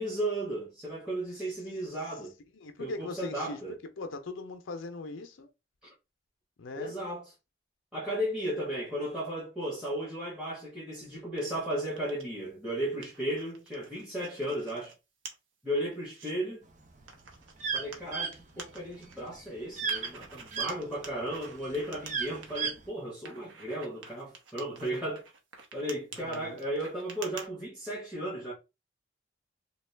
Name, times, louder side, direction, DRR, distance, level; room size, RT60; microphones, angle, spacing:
voice 1, 0.0-2.3 2.8-3.7 6.8-7.3 7.9-14.9 15.6-16.6 17.7-25.2 25.7-28.5, right 1 dB, 5° right, 1.0 m, -35 dB
voice 2, 2.5-3.6 4.0-5.5 6.6-6.9 26.2-26.6, left 3 dB, 85° left, 0.5 m, -40 dB
sound 1, 11.4-12.3 12.7-14.9 15.3-15.4 15.8-16.3 17.1-19.3 19.9-22.7 23.3-27.5, right 5 dB, 85° right, 0.8 m, -48 dB
sound 2, 16.9-20.7 21.2-22.9, right 5 dB, 40° right, 0.5 m, -33 dB
3.0 x 2.3 x 3.2 m
head